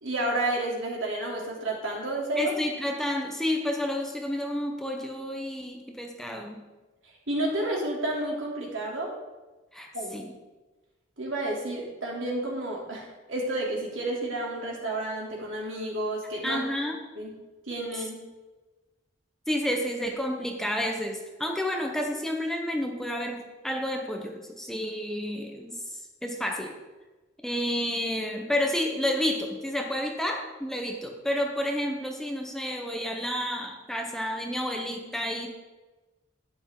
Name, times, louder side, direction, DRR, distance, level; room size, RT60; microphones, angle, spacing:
voice 1, 0.0-2.5 7.3-9.1 9.9-10.1 11.2-16.6 17.2-17.4 17.7-18.2, right 1 dB, 80° right, -2 dB, 3.1 m, -31 dB
voice 2, 2.4-6.6 9.7-10.3 16.4-17.0 19.5-25.8 26.2-26.8 27.4-35.5, left 1 dB, ahead, 1 dB, 1.0 m, -30 dB
11.5 x 10.0 x 3.8 m, 1.2 s
head